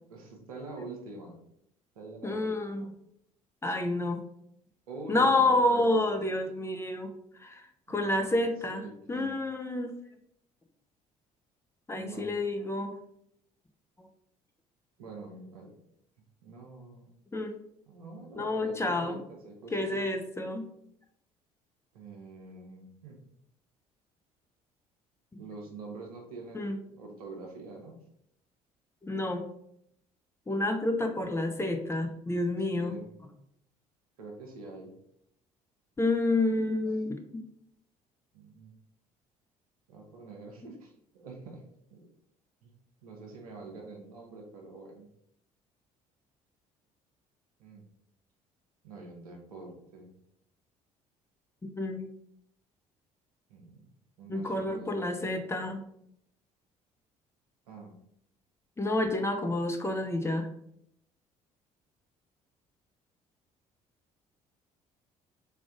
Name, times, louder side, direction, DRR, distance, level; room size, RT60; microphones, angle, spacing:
voice 1, 0.1-1.4 1.9-2.9 4.9-6.1 7.9-9.3 11.9-12.3 15.0-15.7 16.4-17.1 17.9-20.0 21.9-23.2 25.4-27.9 30.9-31.0 32.7-33.1 34.2-34.9 36.5-36.8 38.3-38.7 39.9-41.6 41.9-42.1 42.6-42.7 43.0-45.1 47.6-47.9 48.8-50.1 53.5-53.9 54.2-55.1 57.7-58.0, right 3 dB, 75° right, 1 dB, 0.9 m, -45 dB
voice 2, 2.2-2.9 3.6-4.2 5.1-7.1 7.4-9.9 11.9-13.0 17.3-17.6 18.3-19.2 19.7-20.6 26.5-26.8 29.0-29.4 30.5-33.0 36.0-37.4 51.8-52.1 54.3-55.8 58.8-60.5, left 2 dB, 15° left, 5 dB, 0.6 m, -29 dB
3.6 x 3.4 x 3.6 m, 0.73 s
figure-of-eight pair, 50°, 19 cm